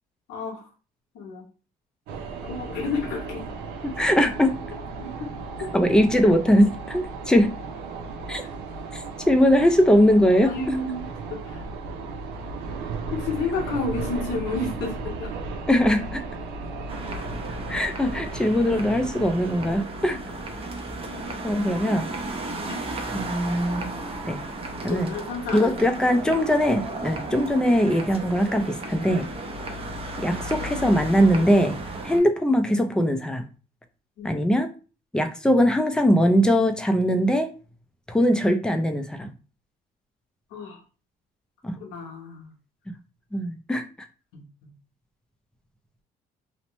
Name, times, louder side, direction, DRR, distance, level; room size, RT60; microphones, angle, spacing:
voice 1, 0.3-0.7 1.1-1.5 2.4-3.4 5.0-5.7 10.4-11.6 13.1-15.3 21.0-21.4 22.5-22.8 24.9-25.9 34.2-34.3 40.5-40.8 41.8-42.5 44.3-44.7, left 3 dB, 90° left, 0 dB, 1.0 m, -31 dB
sound 1, 2.1-19.8, right 3 dB, 85° right, 0.5 m, -35 dB
voice 2, 3.8-4.5 5.7-7.5 8.3-8.4 8.9-10.5 15.7-16.2 17.7-20.2 21.4-22.0 23.1-23.9 24.2-24.4 24.8-25.1 25.5-29.3 30.2-31.7 32.0-33.4 34.2-34.7 35.1-37.5 38.1-39.3 41.6-41.7 43.3-43.8, equal, 5° left, 6 dB, 0.4 m, -21 dB
sound 2, 16.9-32.2, right 2 dB, 35° right, 0.6 m, -34 dB
2.9 x 2.1 x 2.9 m, 0.35 s
cardioid pair, 110°, 17 cm